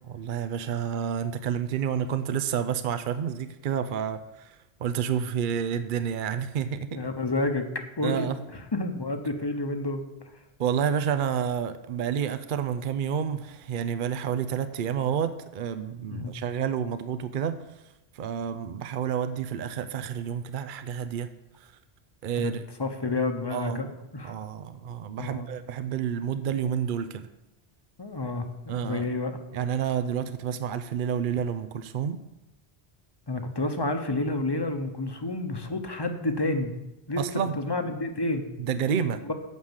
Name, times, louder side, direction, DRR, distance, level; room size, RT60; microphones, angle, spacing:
voice 1, 0.1-7.0 8.0-8.4 10.6-17.6 18.1-21.3 21.6-21.7 22.2-22.7 23.5-23.9 24.2-27.3 28.7-29.1 29.5-32.2 37.2-37.6 38.6-39.2, right 8 dB, 60° right, 10 dB, 0.7 m, -29 dB
voice 2, 6.9-10.0 16.1-16.3 22.4-22.5 22.8-24.3 25.2-25.5 28.0-29.4 33.3-36.7 37.1-37.2 37.6-38.5 39.2-39.3, left 2 dB, 25° left, 6 dB, 1.0 m, -30 dB
9.4 x 6.4 x 7.3 m, 0.97 s
omnidirectional pair, 1.1 m